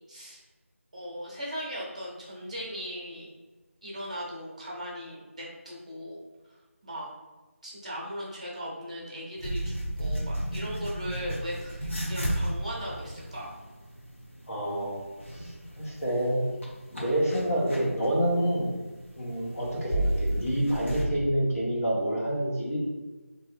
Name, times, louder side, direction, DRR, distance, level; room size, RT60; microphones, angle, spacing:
voice 1, 0.1-0.4 0.9-3.3 3.8-6.2 6.8-7.1 7.6-13.5, equal, 30° right, -5 dB, 0.7 m, -38 dB
sound 1, 9.4-21.1, right 1 dB, 60° left, 0.9 m, -34 dB
voice 2, 14.5-15.0 15.4-16.4 16.9-18.7 19.2-22.8, right 1 dB, 85° left, -4 dB, 1.1 m, -28 dB
3.1 x 2.6 x 2.5 m, 1.2 s
figure-of-eight pair, 175°, 8 cm